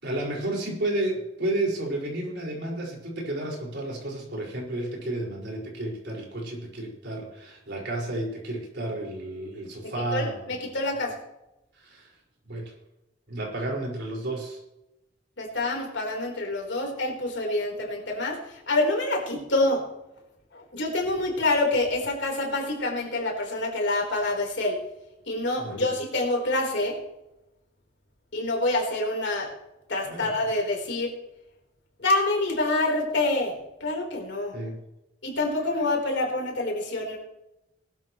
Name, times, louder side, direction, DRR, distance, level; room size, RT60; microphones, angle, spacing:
voice 1, 0.0-10.5 11.7-12.1 12.5-12.7 13.3-14.6 25.6-25.9 30.1-30.3 34.5-34.8, right 1 dB, 60° right, -2 dB, 5.2 m, -32 dB
voice 2, 9.8-11.1 15.4-19.8 20.5-24.8 25.3-27.0 28.3-29.5 29.9-31.1 32.0-33.5 33.8-34.5 35.2-37.2, left 2 dB, 65° left, 0 dB, 4.1 m, -27 dB
20.0 x 12.5 x 3.2 m, 0.91 s
head